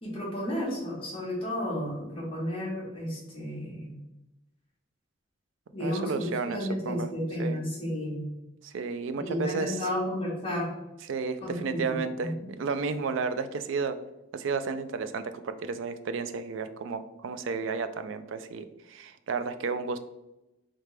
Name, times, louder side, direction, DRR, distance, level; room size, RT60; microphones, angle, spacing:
voice 1, 0.0-3.9 5.7-8.2 9.1-10.7 11.4-12.3, equal, 30° left, -4 dB, 1.3 m, -32 dB
voice 2, 5.8-7.1 7.4-7.6 8.6-9.9 11.1-14.0 14.3-20.0, right 4 dB, 70° right, 10 dB, 0.4 m, -32 dB
3.7 x 3.4 x 3.2 m, 0.96 s
head